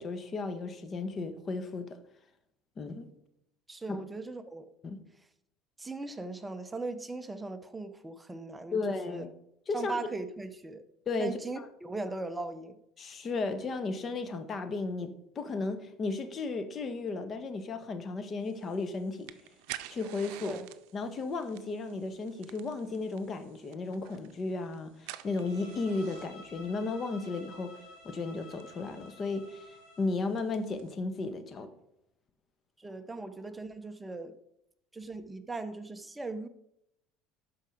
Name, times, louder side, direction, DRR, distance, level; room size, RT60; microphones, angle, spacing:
voice 1, 0.0-1.9 2.8-3.1 3.9-4.0 4.8-5.0 8.7-9.3 9.7-9.9 11.1-11.7 13.0-19.3 19.9-20.6 20.9-29.7 30.0-31.7, left 3 dB, 35° left, 9 dB, 1.3 m, -34 dB
voice 2, 3.7-4.7 5.8-8.8 9.1-9.2 9.7-10.8 11.2-12.8 20.4-20.7 32.8-34.4 34.9-36.5, right 3 dB, 15° right, 10 dB, 0.8 m, -39 dB
sound 1, 18.4-30.9, right 14 dB, 75° right, 0.6 m, -51 dB
Bowed string instrument, 25.2-30.1, left 2 dB, 70° left, 3.2 m, -52 dB
12.5 x 4.9 x 5.0 m, 0.79 s
supercardioid pair, 100°, 0 cm